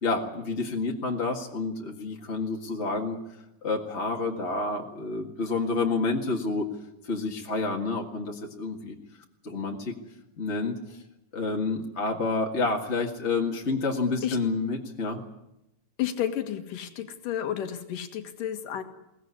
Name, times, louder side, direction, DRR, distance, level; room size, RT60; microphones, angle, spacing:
voice 1, 0.0-3.2 3.6-6.7 7.0-8.9 9.4-9.9 10.4-11.0 11.3-15.2, left 3 dB, 30° left, 0 dB, 1.5 m, -29 dB
voice 2, 16.0-18.8, left 11 dB, 85° left, 7 dB, 3.4 m, -31 dB
22.0 x 19.0 x 9.6 m, 0.90 s
omnidirectional pair, 3.7 m